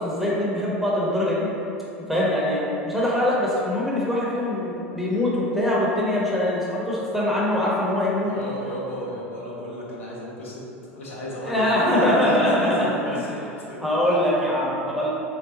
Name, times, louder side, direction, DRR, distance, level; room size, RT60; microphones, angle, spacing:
voice 1, 0.0-1.5 2.0-8.3 11.4-13.2 13.8-15.1, left 1 dB, ahead, -7 dB, 0.9 m, -23 dB
voice 2, 8.2-13.4 13.7-13.9, left 1 dB, 75° left, -6 dB, 0.9 m, -34 dB
4.1 x 2.0 x 3.9 m, 2.7 s
figure-of-eight pair, 80°, 7 cm